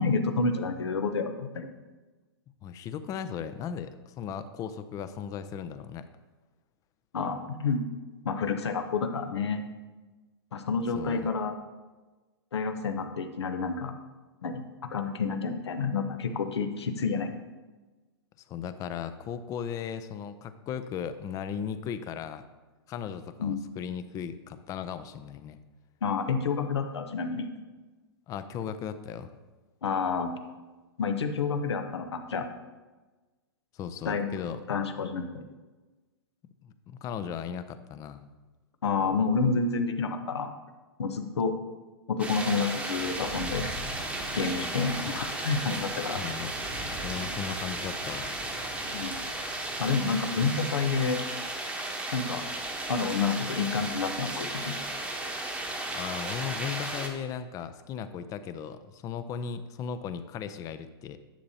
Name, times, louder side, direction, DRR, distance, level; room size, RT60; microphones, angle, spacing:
voice 1, 0.0-1.7 7.1-7.8 8.2-9.6 10.5-11.5 12.5-13.9 14.4-14.6 14.9-17.4 23.4-23.6 26.0-27.5 29.8-30.3 31.0-32.5 34.0-34.3 34.7-35.4 38.8-40.5 41.0-41.5 42.1-43.7 44.3-46.2 48.9-49.2 49.8-51.2 52.1-52.5 52.9-54.8, left 4 dB, 85° left, 7 dB, 0.9 m, -29 dB
voice 2, 2.6-6.1 10.9-11.3 18.5-22.4 22.9-25.6 28.3-29.3 33.7-34.6 36.6-38.2 46.2-46.5 47.0-48.3 50.4-50.5 55.8-61.2, left 8 dB, 25° left, 12 dB, 0.4 m, -37 dB
sound 1, 42.2-57.1, right 1 dB, 10° right, 1.0 m, -34 dB
10.0 x 6.7 x 2.8 m, 1.2 s
hypercardioid pair, 130°, 14 cm